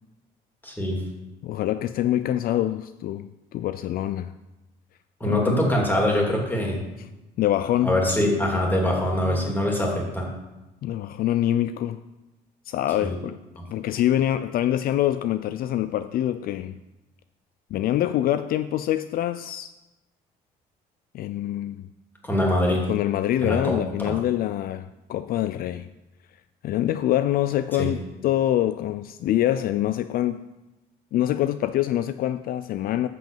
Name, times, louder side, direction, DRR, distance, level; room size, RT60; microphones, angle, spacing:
voice 1, 0.6-1.0 5.2-6.8 7.8-10.3 13.0-13.2 22.2-22.8 23.4-23.8 27.8-27.9, left 1 dB, 10° left, 2.8 m, -23 dB
voice 2, 1.4-4.3 5.2-5.6 7.0-7.1 7.4-8.0 10.8-12.0 12.7-13.4 13.7-16.8 17.7-19.7 21.1-21.9 22.9-25.9 26.6-28.0 28.2-30.4 31.1-33.1, left 12 dB, 60° left, 0.4 m, -25 dB
7.8 x 6.0 x 7.1 m
cardioid pair, 110°, 17 cm